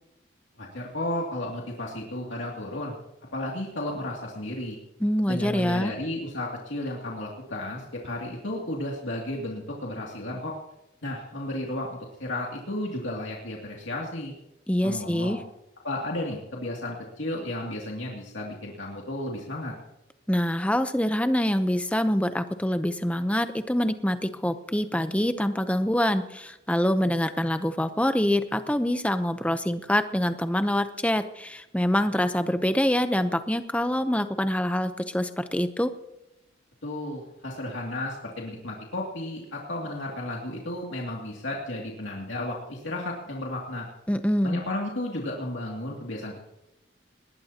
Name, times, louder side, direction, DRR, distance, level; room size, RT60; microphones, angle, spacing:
voice 1, 0.6-3.0 3.3-4.8 5.3-10.5 11.0-14.3 14.8-15.4 15.8-19.7 36.8-43.9 44.4-46.4, left 1 dB, 85° left, -2 dB, 2.5 m, -33 dB
voice 2, 5.0-5.9 14.7-15.4 20.3-35.9 44.1-44.6, left 1 dB, 5° left, 9 dB, 0.7 m, -25 dB
20.0 x 19.5 x 2.9 m, 0.90 s
head